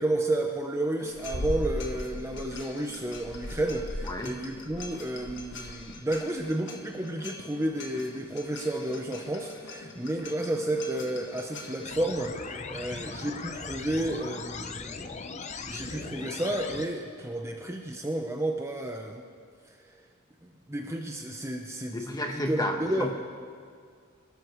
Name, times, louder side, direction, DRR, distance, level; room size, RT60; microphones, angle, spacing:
voice 1, 0.0-15.1 15.7-19.2 20.4-23.1, right 1 dB, 15° right, 2 dB, 0.7 m, -31 dB
sound 1, 1.0-11.9, left 1 dB, 60° left, 1.4 m, -40 dB
voice 2, 4.1-4.4 21.9-23.1, left 1 dB, 20° left, 2 dB, 1.3 m, -32 dB
sound 2, 11.8-16.8, left 4 dB, 35° left, 0.7 m, -39 dB
25.0 x 13.0 x 3.2 m, 2.1 s
head